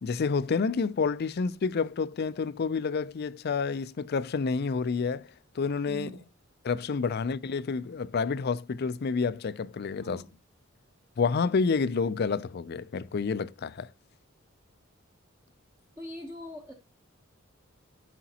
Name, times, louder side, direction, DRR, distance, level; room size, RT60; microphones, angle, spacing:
voice 1, 0.0-5.3 5.6-6.1 6.6-10.2 11.2-13.9, left 5 dB, 50° left, 0.4 m, -29 dB
voice 2, 5.9-6.2 10.0-10.3 16.0-16.7, right 1 dB, 15° right, 0.8 m, -42 dB
11.5 x 5.1 x 2.8 m
head